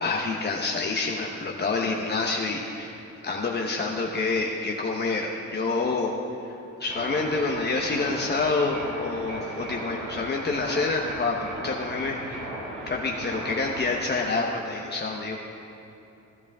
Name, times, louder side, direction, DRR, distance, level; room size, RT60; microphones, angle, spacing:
voice 1, 0.0-6.1 6.8-12.5 12.9-15.4, left 3 dB, 35° left, -1 dB, 1.0 m, -27 dB
sound 1, 6.9-13.9, right 1 dB, 85° right, 3.5 m, -37 dB
16.5 x 12.0 x 3.6 m, 2.9 s
cardioid pair, 90°, 30 cm